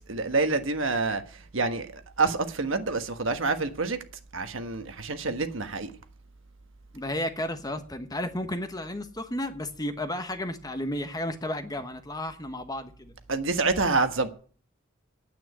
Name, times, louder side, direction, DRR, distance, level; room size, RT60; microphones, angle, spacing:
voice 1, 0.0-4.0 4.3-5.9 13.3-14.3, right 3 dB, 65° right, 1.3 m, -27 dB
voice 2, 6.9-13.2, left 1 dB, 20° left, 1.1 m, -33 dB
9.5 x 9.0 x 8.2 m
head